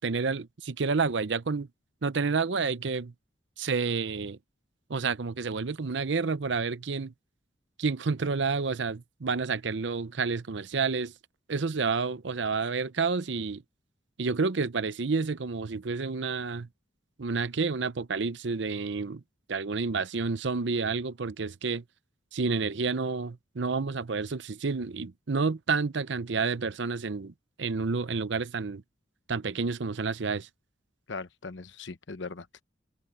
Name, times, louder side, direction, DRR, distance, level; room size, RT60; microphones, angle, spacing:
voice 1, 0.0-1.7 2.0-3.1 3.6-4.4 4.9-7.1 7.8-11.1 11.5-13.6 14.2-16.7 17.2-19.2 19.5-21.8 22.3-28.8 29.3-30.5, right 4 dB, 65° right, 0.7 m, -29 dB
voice 2, 31.1-32.6, left 4 dB, 65° left, 1.0 m, -39 dB
head